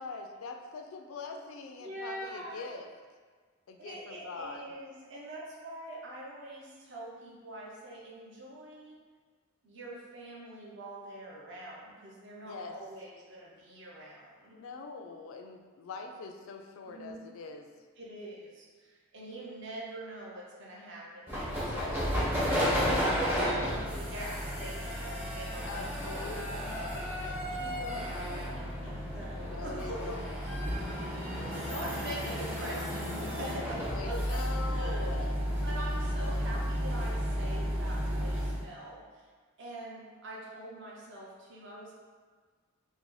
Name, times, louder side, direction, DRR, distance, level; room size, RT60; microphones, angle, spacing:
voice 1, 0.0-2.9 3.7-4.6 12.5-12.7 14.5-17.7 21.7-22.0 25.7-26.9 29.4-30.3 33.9-35.4, left 4 dB, 65° left, 4 dB, 0.3 m, -43 dB
voice 2, 1.8-2.6 3.8-9.0 9.6-14.6 16.9-17.2 18.0-22.9 23.3-26.3 27.5-30.1 30.6-34.5 34.7-35.1 35.6-39.3 39.6-41.9, right 1 dB, 55° right, -4 dB, 0.7 m, -44 dB
sound 1, 21.3-38.6, equal, 10° right, 0.5 m, -32 dB
3.8 x 2.0 x 3.1 m, 1.5 s
head